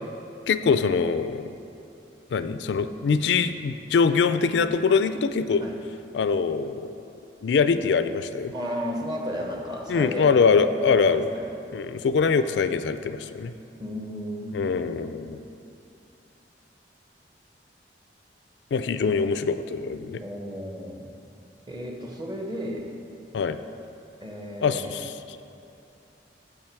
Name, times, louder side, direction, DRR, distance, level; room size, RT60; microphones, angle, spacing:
voice 1, 0.5-1.5 2.3-5.7 6.1-6.9 7.4-8.5 9.9-11.3 11.7-13.5 14.5-15.4 18.7-20.2 23.3-23.6 24.6-25.1, left 5 dB, 75° left, 11 dB, 0.4 m, -23 dB
voice 2, 8.5-10.4 10.8-11.5 13.8-14.9 19.0-19.1 20.2-21.1 21.7-22.9 24.2-25.0, equal, 25° right, 1 dB, 1.0 m, -34 dB
14.5 x 5.0 x 4.6 m, 2.7 s
head